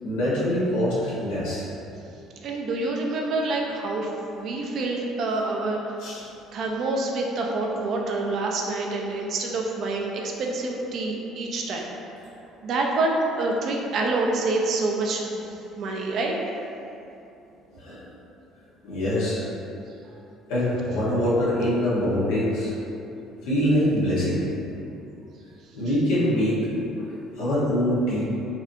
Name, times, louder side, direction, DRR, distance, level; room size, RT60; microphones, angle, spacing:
voice 1, 0.0-1.7 6.0-6.2 17.7-18.1 18.8-19.4 20.5-22.7 23.4-24.5 25.7-26.6 27.1-28.2, equal, 85° left, -9 dB, 1.1 m, -24 dB
voice 2, 2.4-5.8 6.5-11.9 12.6-15.4 15.8-16.3, right 2 dB, 55° right, 0 dB, 0.5 m, -27 dB
4.1 x 2.6 x 2.7 m, 2.8 s
cardioid pair, 100°, 0 cm